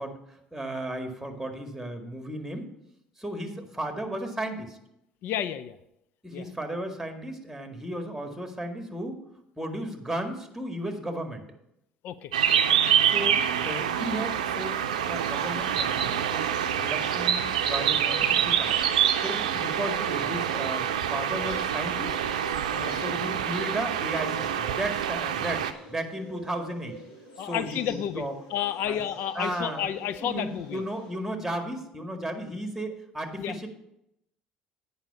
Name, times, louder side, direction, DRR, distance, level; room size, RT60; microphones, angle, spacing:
voice 1, 0.0-2.7 3.2-4.8 6.2-9.2 9.6-11.4 13.1-18.8 19.2-22.2 22.7-27.0 27.4-28.3 28.8-29.0 29.4-33.7, right 1 dB, 5° right, 5 dB, 2.0 m, -35 dB
voice 2, 5.2-5.8 6.3-6.5 12.0-12.6 22.7-23.0 27.4-28.2 28.5-30.8 33.4-33.6, left 10 dB, 60° left, 14 dB, 0.5 m, -31 dB
sound 1, 12.3-25.7, right 9 dB, 85° right, 0.5 m, -26 dB
sound 2, 13.7-31.1, equal, 80° left, 2.8 m, -45 dB
8.9 x 5.5 x 7.1 m, 0.81 s
hypercardioid pair, 65°, 4 cm